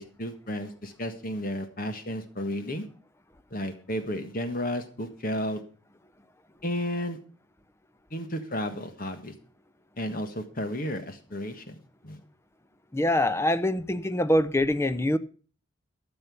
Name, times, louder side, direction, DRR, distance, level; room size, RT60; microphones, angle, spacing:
voice 1, 0.0-2.8 3.5-5.6 6.6-7.2 8.1-9.3 10.0-11.7 12.0-12.2, equal, 45° left, 1.5 m, -32 dB
voice 2, 12.9-15.2, left 1 dB, 15° left, 0.6 m, -24 dB
13.5 x 7.0 x 6.9 m
head